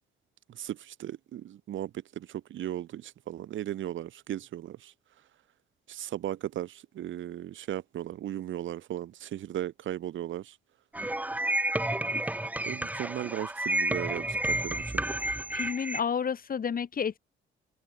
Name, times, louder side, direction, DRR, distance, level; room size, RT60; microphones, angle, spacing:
voice 1, 0.5-4.9 5.9-10.6 12.6-15.0, right 12 dB, 75° right, 5.0 m, -36 dB
sound 1, 10.9-16.0, right 1 dB, 5° right, 0.9 m, -31 dB
voice 2, 15.5-17.2, left 7 dB, 45° left, 2.6 m, -30 dB
cardioid pair, 90°, 20 cm